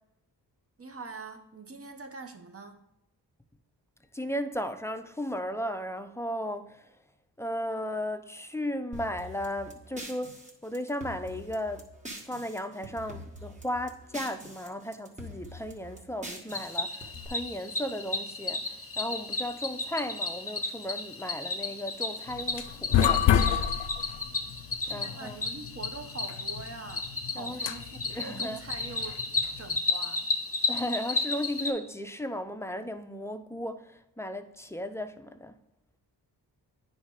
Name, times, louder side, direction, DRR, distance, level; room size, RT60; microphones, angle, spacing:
voice 1, 0.8-2.8 24.9-29.1 29.6-30.2, right 4 dB, 35° right, 0.9 m, -43 dB
voice 2, 4.1-6.8 7.4-11.9 12.3-23.3 24.9-25.4 27.4-27.6 28.1-28.6 30.7-35.5, equal, 5° left, 0.5 m, -35 dB
sound 1, 8.9-12.6 12.8-14.7 14.9-17.3, equal, 15° right, 1.5 m, -44 dB
Cricket, 16.5-31.7, left 3 dB, 30° left, 1.1 m, -33 dB
sound 2, 22.3-29.8, left 10 dB, 85° left, 0.5 m, -29 dB
9.4 x 3.3 x 4.8 m
cardioid pair, 60°, 42 cm